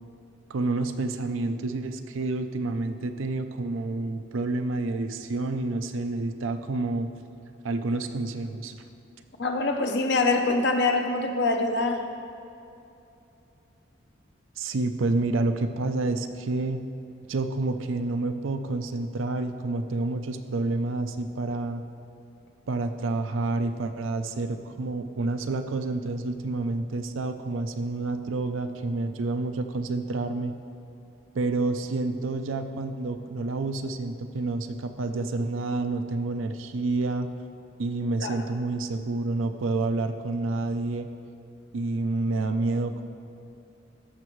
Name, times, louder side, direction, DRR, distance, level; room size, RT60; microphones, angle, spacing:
voice 1, 0.5-7.1 7.6-8.7 14.6-16.8 17.3-21.8 22.7-30.5 31.3-37.3 37.8-41.1 41.7-43.0, right 2 dB, 90° right, 8 dB, 0.5 m, -29 dB
voice 2, 9.4-12.0 38.2-38.4, left 3 dB, 60° left, 5 dB, 0.6 m, -24 dB
14.0 x 5.9 x 3.1 m, 2.8 s
head